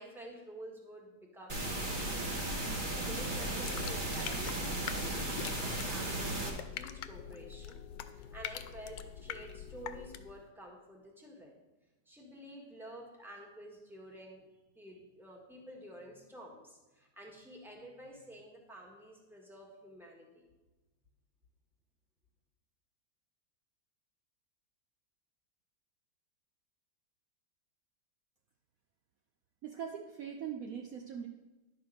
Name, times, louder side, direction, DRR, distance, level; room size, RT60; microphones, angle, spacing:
voice 1, 0.0-2.1 2.9-5.1 5.4-11.6 12.0-14.4 14.7-20.4, right 1 dB, ahead, -1 dB, 1.5 m, -50 dB
sound 1, 1.5-6.5, right 1 dB, 30° right, 1.4 m, -35 dB
sound 2, 3.2-10.4, left 9 dB, 85° left, 1.3 m, -45 dB
voice 2, 29.6-31.3, right 8 dB, 65° right, 3 dB, 1.0 m, -41 dB
11.0 x 4.8 x 6.3 m, 1.1 s
omnidirectional pair, 1.9 m